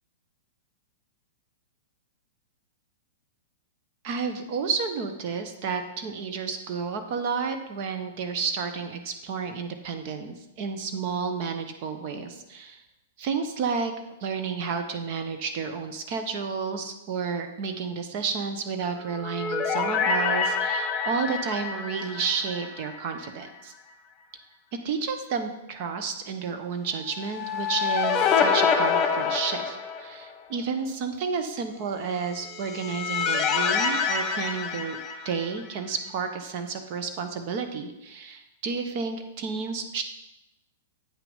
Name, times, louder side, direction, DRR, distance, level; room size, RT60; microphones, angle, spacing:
voice 1, 4.0-12.8 13.2-13.9 14.2-23.7 24.8-35.0 35.2-40.0, right 5 dB, 50° right, 7 dB, 1.1 m, -31 dB
sound 1, 19.0-23.3 23.6-23.7 27.2-30.3 32.3-35.7, left 6 dB, 25° left, 1.2 m, -27 dB
8.5 x 5.9 x 5.5 m, 0.95 s
hypercardioid pair, 120°, 0 cm